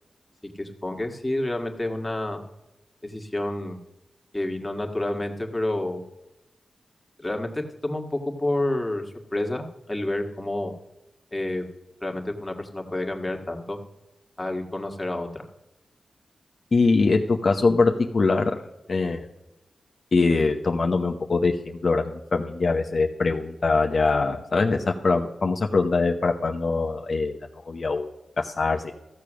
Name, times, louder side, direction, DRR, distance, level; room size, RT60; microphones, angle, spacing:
voice 1, 0.6-2.4 3.0-3.8 4.3-6.1 7.2-9.0 9.3-10.7 11.3-11.6 12.0-13.8 14.4-15.4, left 1 dB, 15° left, 3 dB, 1.7 m, -29 dB
voice 2, 16.7-18.6 18.9-19.3 20.1-27.4 27.6-28.1 28.4-28.9, left 3 dB, 55° left, 3 dB, 0.9 m, -23 dB
14.0 x 6.8 x 6.2 m, 0.99 s
wide cardioid pair, 85°, 0 cm